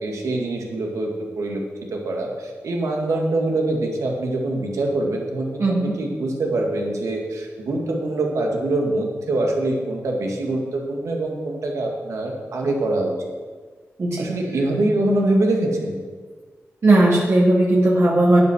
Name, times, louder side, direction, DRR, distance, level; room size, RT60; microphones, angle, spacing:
voice 1, 0.0-1.1 1.4-1.6 1.9-13.1 14.2-16.0, right 2 dB, 90° right, 0 dB, 2.0 m, -24 dB
voice 2, 5.6-5.9 14.0-14.3 16.8-18.4, right 2 dB, 60° right, -5 dB, 2.2 m, -17 dB
9.4 x 8.3 x 6.2 m, 1.5 s
cardioid pair, 55°, 5 cm